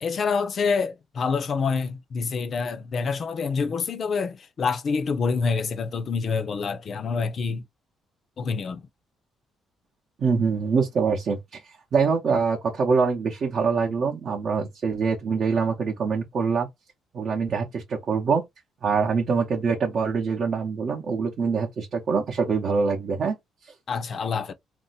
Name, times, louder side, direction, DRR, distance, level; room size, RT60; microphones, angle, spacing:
voice 1, 0.0-7.6 8.4-8.9 23.9-24.5, left 5 dB, 40° left, 0.5 m, -27 dB
voice 2, 10.2-16.7 17.1-18.4 18.8-23.3 23.6-23.7, right 5 dB, 45° right, 0.7 m, -24 dB
2.6 x 2.0 x 4.0 m
cardioid pair, 140°, 0 cm